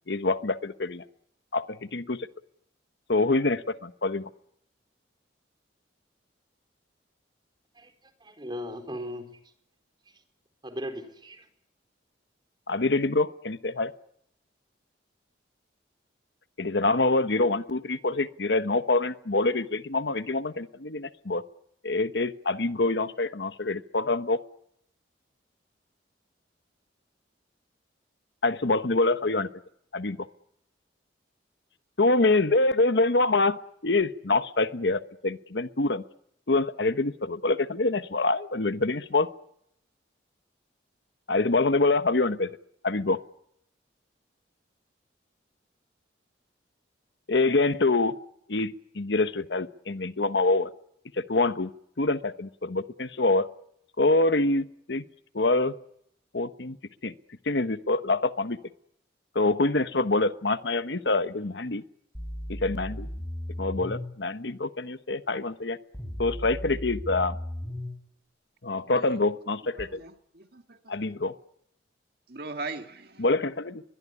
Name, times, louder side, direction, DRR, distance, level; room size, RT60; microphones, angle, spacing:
voice 1, 0.1-1.0 1.5-2.3 3.1-4.2 12.7-13.9 16.6-21.4 21.8-24.4 28.4-29.5 29.9-30.3 32.0-36.0 36.5-39.3 41.3-42.5 42.8-43.2 47.3-48.1 48.5-50.7 51.2-51.7 52.0-53.5 54.0-55.0 55.3-55.7 56.3-56.8 57.0-57.1 57.5-58.6 59.3-61.8 62.5-63.1 63.6-65.8 66.2-67.4 68.6-70.0 70.9-71.3 73.2-73.8, left 2 dB, 65° left, 1.1 m, -25 dB
voice 2, 8.2-9.3 10.6-11.5, equal, 25° right, 4.4 m, -37 dB
sound 1, 62.1-64.1 65.9-67.9 69.8-69.9, equal, 15° left, 6.4 m, -36 dB
voice 3, 68.8-69.2 69.8-71.2 72.3-73.3, right 3 dB, 55° right, 1.8 m, -41 dB
22.5 x 22.5 x 9.8 m
head